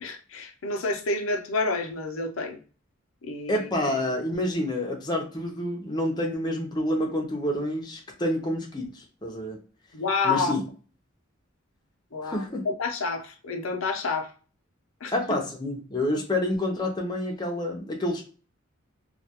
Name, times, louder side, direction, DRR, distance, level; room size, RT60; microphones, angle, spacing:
voice 1, 0.0-2.6 3.2-3.7 9.9-10.6 12.1-14.3 15.0-15.1, left 3 dB, 85° left, 4 dB, 0.5 m, -29 dB
voice 2, 3.5-9.6 10.2-10.6 12.2-12.7 15.1-18.2, left 1 dB, 20° left, 0 dB, 0.5 m, -28 dB
2.3 x 2.2 x 2.8 m, 0.38 s
head